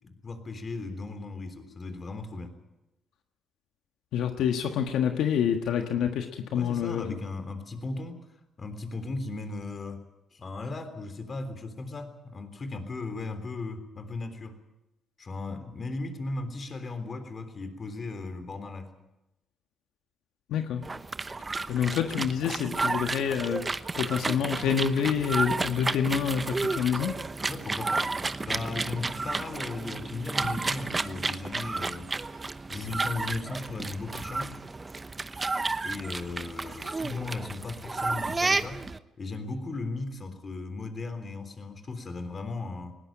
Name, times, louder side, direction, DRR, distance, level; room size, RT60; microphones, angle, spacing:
voice 1, 0.0-2.5 6.5-8.2 8.6-10.0 10.3-14.6 15.2-19.0 27.5-28.1 28.4-32.1 32.7-34.6 35.8-38.8 39.2-43.0, left 3 dB, 40° left, 9 dB, 3.5 m, -36 dB
voice 2, 4.1-7.2 20.5-20.8 21.7-23.6 24.0-27.2, left 8 dB, 80° left, 5 dB, 1.5 m, -27 dB
sound 1, 20.8-39.0, right 3 dB, 25° right, 0.9 m, -32 dB
20.0 x 18.0 x 8.9 m, 0.93 s
cardioid pair, 90°, 0 cm